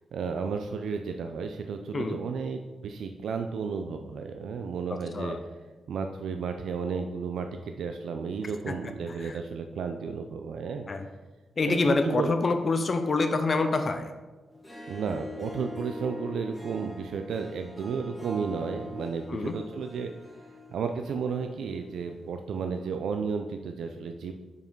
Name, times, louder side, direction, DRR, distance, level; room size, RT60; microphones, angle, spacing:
voice 1, 0.1-5.4 5.9-10.9 11.6-12.3 14.9-20.1 20.7-24.3, right 5 dB, 85° right, 6 dB, 0.4 m, -33 dB
voice 2, 11.6-14.1 19.3-19.5, left 3 dB, 35° left, 7 dB, 0.4 m, -26 dB
Harp, 14.5-21.9, left 2 dB, 10° left, 1.0 m, -44 dB
5.4 x 4.8 x 4.5 m, 1.2 s
wide cardioid pair, 140°, 0 cm